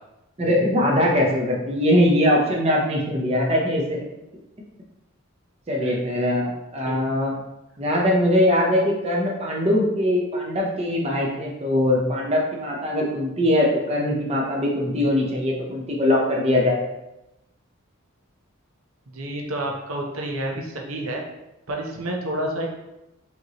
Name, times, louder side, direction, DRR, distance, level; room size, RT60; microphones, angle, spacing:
voice 1, 0.4-4.0 5.7-7.3 7.8-16.8, left 1 dB, 30° right, -2 dB, 0.7 m, -21 dB
voice 2, 19.1-21.2 21.7-22.7, right 1 dB, 80° right, 1 dB, 0.7 m, -29 dB
5.1 x 2.9 x 2.9 m, 0.94 s
head